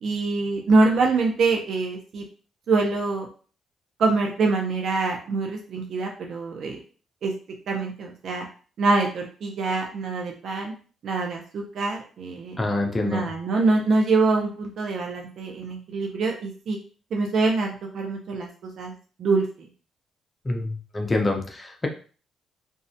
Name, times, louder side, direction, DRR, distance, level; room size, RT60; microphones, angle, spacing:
voice 1, 0.0-2.2 2.7-3.3 4.0-6.8 7.2-7.3 7.7-8.5 8.8-10.7 11.0-12.6 13.0-16.8 17.1-18.9 19.2-19.5, right 3 dB, 60° right, 0 dB, 0.4 m, -24 dB
voice 2, 12.6-13.3 20.4-21.9, left 2 dB, 25° left, 2 dB, 0.5 m, -26 dB
2.3 x 2.1 x 2.6 m, 0.39 s
cardioid pair, 90°, 0 cm